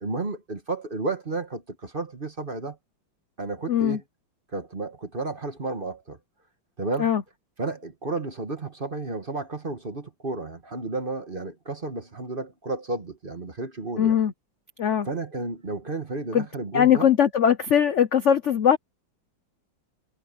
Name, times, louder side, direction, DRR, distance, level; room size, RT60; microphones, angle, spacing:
voice 1, 0.0-2.8 3.4-4.0 4.5-6.2 6.8-7.1 7.6-14.2 15.0-17.1, right 3 dB, 30° right, 1.4 m, -32 dB
voice 2, 3.7-4.0 7.0-7.2 14.0-14.3 14.8-15.1 16.3-16.4 16.7-18.8, left 9 dB, 65° left, 0.7 m, -20 dB
omnidirectional pair, 2.2 m